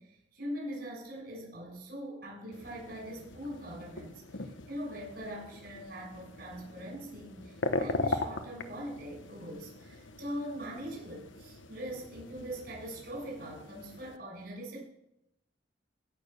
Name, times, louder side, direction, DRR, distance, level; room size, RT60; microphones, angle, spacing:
voice 1, 0.0-14.8, equal, 55° right, -3 dB, 6.6 m, -42 dB
sound 1, 2.5-14.2, left 3 dB, 90° left, 1.1 m, -40 dB
16.0 x 6.8 x 6.8 m, 0.83 s
head